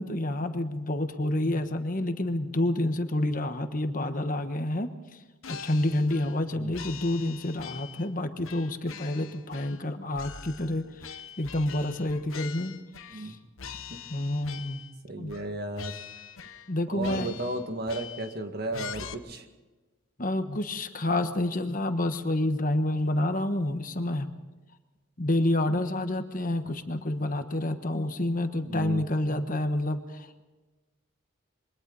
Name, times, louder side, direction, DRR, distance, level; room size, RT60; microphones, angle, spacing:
voice 1, 0.0-5.2 5.5-12.8 13.1-13.4 14.1-14.8 15.2-15.4 16.7-17.3 20.2-24.3 25.2-30.4, left 1 dB, 40° left, 8 dB, 1.2 m, -29 dB
sound 1, 5.4-6.4 6.7-8.1 8.4-9.9 10.1-13.3 13.6-15.0 15.3-15.5 15.8-16.7 17.0-18.4 18.7-19.1, left 7 dB, 80° left, 1.1 m, -43 dB
voice 2, 15.1-16.0 16.9-19.5 28.6-29.0, right 1 dB, 50° right, 5 dB, 2.0 m, -34 dB
27.5 x 23.0 x 4.1 m, 1.2 s
head